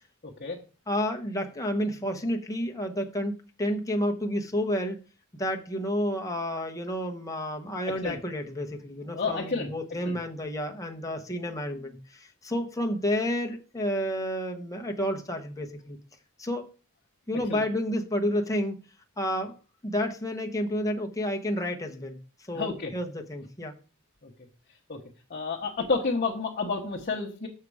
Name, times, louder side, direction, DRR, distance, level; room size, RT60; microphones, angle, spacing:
voice 1, 0.9-5.0 5.4-16.0 16.4-16.7 17.3-18.8 19.2-19.6 19.8-23.8, equal, 15° left, 2 dB, 1.0 m, -30 dB
voice 2, 9.1-9.7 10.0-10.2 17.5-17.6 22.5-22.9 24.2-24.3 24.9-25.0 25.3-27.5, left 4 dB, 40° left, -2 dB, 1.1 m, -30 dB
6.6 x 6.6 x 4.8 m, 0.36 s
head